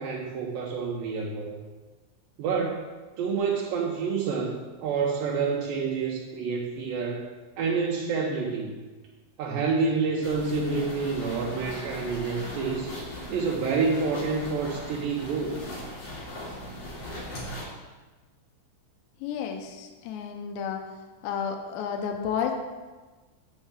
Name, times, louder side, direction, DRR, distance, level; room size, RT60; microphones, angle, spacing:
voice 1, 0.0-1.6 2.4-2.8 3.2-4.6 4.8-7.3 7.6-8.7 9.4-12.9 13.3-15.6, right 5 dB, 80° right, -2 dB, 2.0 m, -28 dB
sound 1, 10.2-17.6, left 1 dB, 50° left, 4.2 m, -39 dB
voice 2, 19.2-20.8 21.2-22.6, left 7 dB, 80° left, 3 dB, 2.8 m, -31 dB
10.5 x 4.5 x 7.4 m, 1.3 s
omnidirectional pair, 5.4 m